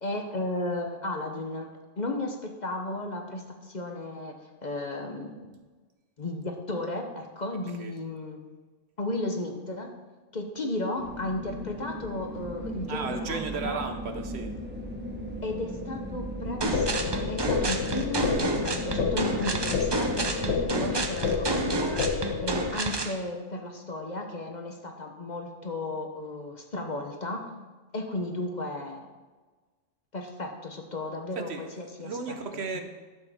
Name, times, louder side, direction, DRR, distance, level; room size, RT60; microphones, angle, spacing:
voice 1, 0.0-1.7 2.0-4.3 4.6-5.6 6.2-8.4 9.0-9.9 10.3-13.8 15.4-22.1 22.4-27.4 27.9-29.1 30.1-32.4 32.7-32.8, left 2 dB, 40° left, 3 dB, 0.9 m, -34 dB
sound 1, 11.0-21.0, equal, 10° right, 0.9 m, -37 dB
voice 2, 12.9-14.6 31.3-32.8, right 5 dB, 65° right, 6 dB, 1.0 m, -35 dB
sound 2, 16.6-23.2, right 3 dB, 30° right, 0.5 m, -30 dB
sound 3, 16.7-22.7, left 5 dB, 70° left, 1.0 m, -30 dB
12.0 x 7.4 x 3.5 m, 1.3 s
omnidirectional pair, 1.2 m